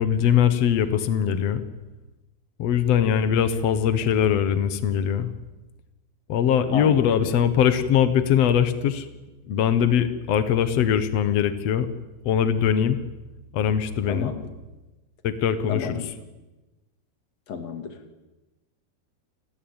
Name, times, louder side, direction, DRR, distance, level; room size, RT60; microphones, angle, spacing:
voice 1, 0.0-1.6 2.6-5.3 6.3-9.0 9.5-11.9 12.2-13.0 13.5-14.3 15.2-15.9, left 9 dB, 80° left, 11 dB, 1.4 m, -21 dB
voice 2, 6.7-7.4 14.0-14.5 15.7-16.1 17.5-18.0, left 5 dB, 40° left, 7 dB, 3.2 m, -33 dB
29.5 x 21.0 x 9.0 m, 1.1 s
omnidirectional pair, 5.1 m